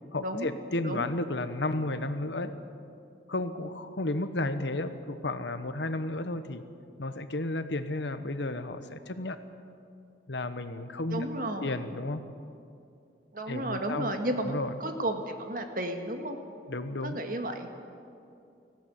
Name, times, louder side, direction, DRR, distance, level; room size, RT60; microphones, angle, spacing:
voice 1, 0.1-2.5 3.3-6.6 7.0-9.4 10.3-11.3 11.6-12.2 13.5-14.1 14.4-14.7 16.7-17.2, left 2 dB, 80° left, 10 dB, 1.1 m, -32 dB
voice 2, 11.1-11.8 13.3-14.5 14.8-16.4 17.0-17.7, right 1 dB, 50° right, 5 dB, 1.8 m, -33 dB
18.5 x 16.0 x 9.2 m, 2.6 s
head